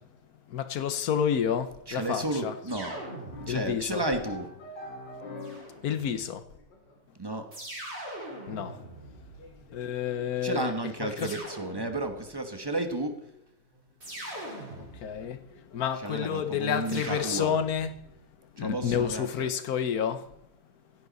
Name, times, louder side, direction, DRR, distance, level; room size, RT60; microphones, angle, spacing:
voice 1, 0.5-2.5 3.5-4.0 5.8-6.4 8.5-8.8 9.7-10.7 11.0-11.3 14.7-15.4 15.7-17.9 18.5-20.3, left 8 dB, 60° left, 1.3 m, -29 dB
voice 2, 1.9-3.0 3.5-4.5 7.2-7.5 10.4-13.1 16.0-17.6 18.6-19.5, right 2 dB, 15° right, 1.0 m, -32 dB
sound 1, 2.7-3.8 4.1-7.5 8.2-11.4 12.1-12.5 12.8-13.9 14.2-14.3 14.8-16.0 17.0-18.1, left 2 dB, 75° left, 2.8 m, -48 dB
sound 2, 2.7-3.9 5.4-6.3 7.5-9.8 11.2-12.3 14.0-15.4 16.8-18.1, right 1 dB, 35° right, 4.7 m, -42 dB
16.5 x 11.0 x 4.1 m
omnidirectional pair, 2.0 m